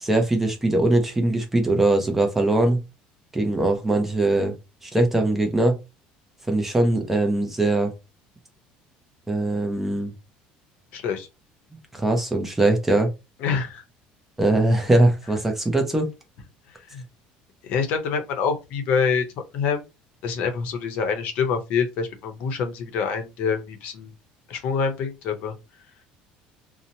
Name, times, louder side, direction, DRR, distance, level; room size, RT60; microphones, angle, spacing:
voice 1, 0.0-2.8 3.3-4.5 4.8-5.8 6.5-7.9 9.3-10.1 11.9-13.1 14.4-16.1, right 2 dB, 10° right, 0.5 m, -21 dB
voice 2, 10.9-11.3 13.4-13.8 16.9-17.0 17.6-19.2 19.5-19.8 20.2-24.1 24.5-25.5, left 6 dB, 60° left, 0.7 m, -26 dB
2.7 x 2.1 x 2.7 m
cardioid pair, 150°, 3 cm